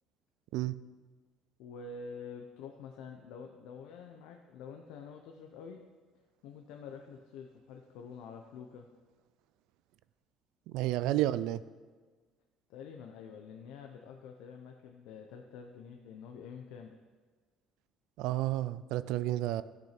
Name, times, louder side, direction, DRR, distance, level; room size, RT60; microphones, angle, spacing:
voice 1, 1.6-5.8 6.4-8.9 11.0-11.4 12.7-17.0, left 5 dB, 85° left, 0.8 m, -47 dB
voice 2, 10.7-11.6 18.2-19.6, right 15 dB, 80° right, 0.4 m, -31 dB
14.0 x 6.0 x 5.9 m
cardioid pair, 155°, 0 cm